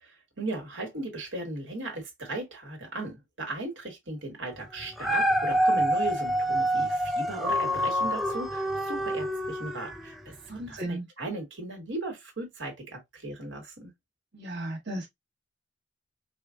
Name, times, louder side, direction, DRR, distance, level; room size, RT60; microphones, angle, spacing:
voice 1, 0.0-13.9, right 2 dB, 85° right, 1.7 m, -37 dB
Dog, 4.8-10.1 10.7-10.8, equal, ahead, 0.4 m, -27 dB
voice 2, 10.5-11.0 14.3-15.1, right 1 dB, 60° right, 1.3 m, -35 dB
5.0 x 2.3 x 2.4 m
head